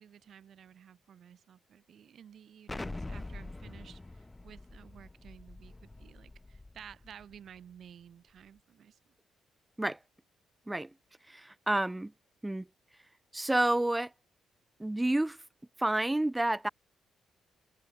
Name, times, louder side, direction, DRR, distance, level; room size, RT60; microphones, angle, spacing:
voice 1, 0.0-9.1, right 8 dB, 60° right, 5.0 m, -54 dB
Explosion, 2.7-7.4, left 2 dB, 15° left, 6.6 m, -44 dB
voice 2, 11.3-12.1 12.4-12.6 13.3-14.1 14.8-15.4 15.8-16.7, right 1 dB, 10° right, 1.0 m, -29 dB
cardioid pair, 120°, 0 cm